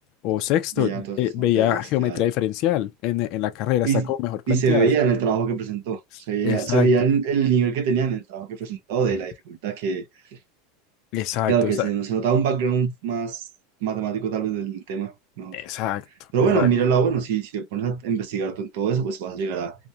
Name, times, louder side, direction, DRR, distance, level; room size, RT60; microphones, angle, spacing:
voice 1, 0.2-4.9 6.4-6.9 11.1-11.9 15.5-16.0 16.4-16.7, left 13 dB, 50° left, 0.3 m, -24 dB
voice 2, 0.8-2.3 3.8-4.1 4.5-6.0 6.3-10.0 11.5-13.4 13.8-15.6 16.3-19.8, right 6 dB, 70° right, 0.7 m, -24 dB
2.2 x 2.1 x 2.7 m
supercardioid pair, 140°, 0 cm